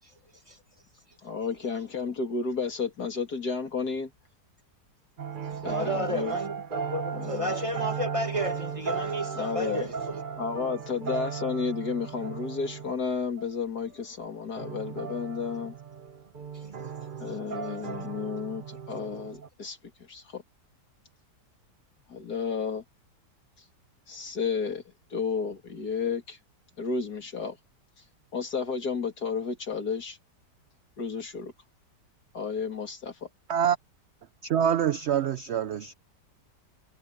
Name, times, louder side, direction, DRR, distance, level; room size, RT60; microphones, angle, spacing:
voice 1, 1.2-4.1 5.6-6.3 7.1-7.5 9.4-9.9 10.4-15.7 17.2-19.8 20.1-20.4 22.1-22.8 24.1-24.8 25.1-26.4 26.8-27.6 28.3-30.2 31.0-31.5 32.3-33.3, left 5 dB, 65° left, 3.2 m, -32 dB
sound 1, 5.2-13.0 13.4-13.5 13.9-14.0 14.6-19.5, right 6 dB, 40° right, 0.8 m, -36 dB
voice 2, 5.7-10.2 16.5-17.0 17.8-17.9, equal, 20° right, 1.8 m, -33 dB
voice 3, 34.4-35.9, right 9 dB, 70° right, 0.6 m, -25 dB
omnidirectional pair, 1.8 m